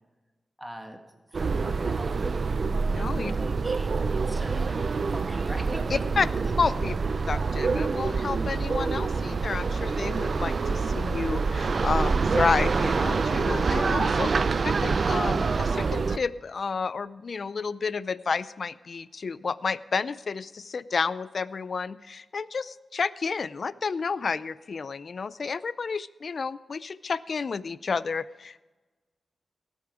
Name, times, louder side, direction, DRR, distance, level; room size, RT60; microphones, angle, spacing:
voice 1, 0.6-1.0 1.3-2.5 3.2-6.0 7.2-7.3, right 1 dB, 10° right, 3 dB, 1.8 m, -41 dB
sound 1, 1.3-16.2, right 4 dB, 50° right, 0.5 m, -26 dB
voice 2, 2.9-3.3 5.9-6.3 6.6-7.0 7.3-14.3 14.6-28.6, left 5 dB, 55° left, 17 dB, 0.4 m, -30 dB
18.0 x 8.2 x 4.9 m, 1.2 s
wide cardioid pair, 105°, 0 cm